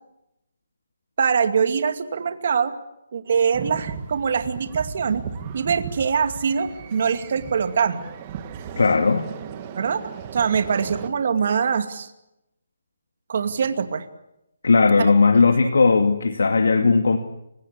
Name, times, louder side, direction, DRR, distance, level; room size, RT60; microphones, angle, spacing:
voice 1, 1.2-2.7 3.1-5.2 5.5-8.0 9.8-10.0 10.3-12.1 13.3-14.1, right 6 dB, 45° right, 9 dB, 2.4 m, -23 dB
sound 1, 3.5-11.1, right 7 dB, 20° right, 1.7 m, -36 dB
voice 2, 8.8-9.2 14.6-17.2, left 4 dB, 80° left, 7 dB, 2.3 m, -17 dB
29.5 x 17.0 x 8.5 m, 0.86 s
hypercardioid pair, 175°, 0 cm